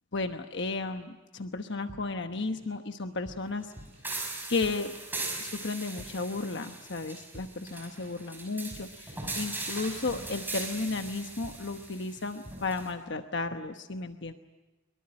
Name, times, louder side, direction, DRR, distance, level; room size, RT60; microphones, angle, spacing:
voice 1, 0.1-3.7 4.5-4.9 5.4-14.3, left 3 dB, 60° left, 7 dB, 1.1 m, -34 dB
sound 1, 1.9-2.8 3.1-5.0 5.3-5.6 5.9-6.4 6.7-10.5 10.7-11.0 11.3-11.9 12.1-12.7, equal, 30° right, 4.8 m, -51 dB
sound 2, 4.0-12.9, right 2 dB, 10° right, 5.6 m, -39 dB
23.5 x 23.5 x 8.8 m, 1.1 s
head